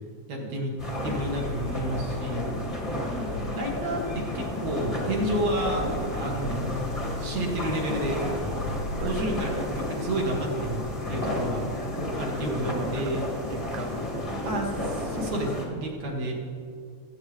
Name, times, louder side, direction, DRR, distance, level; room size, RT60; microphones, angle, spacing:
voice 1, 0.3-0.7 1.0-2.5 3.1-6.8 7.2-8.3 8.9-11.7 12.2-13.2 14.4-16.3, right 1 dB, 60° right, -1 dB, 2.3 m, -30 dB
sound 1, 0.8-15.6, left 1 dB, 20° left, 0.8 m, -31 dB
voice 2, 12.4-13.2 13.5-14.3, right 7 dB, 80° right, 10 dB, 2.0 m, -39 dB
20.0 x 8.3 x 3.3 m, 2.3 s
omnidirectional pair, 3.6 m